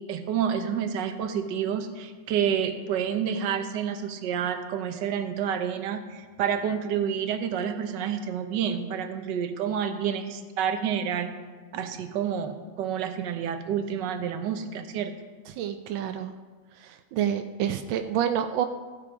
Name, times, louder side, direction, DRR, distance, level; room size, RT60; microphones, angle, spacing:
voice 1, 0.1-11.3 11.7-15.1, right 8 dB, 70° right, 8 dB, 1.5 m, -29 dB
voice 2, 15.5-16.3 16.8-18.7, right 9 dB, 90° right, 7 dB, 1.4 m, -28 dB
15.0 x 7.8 x 4.8 m, 1.5 s
omnidirectional pair, 2.0 m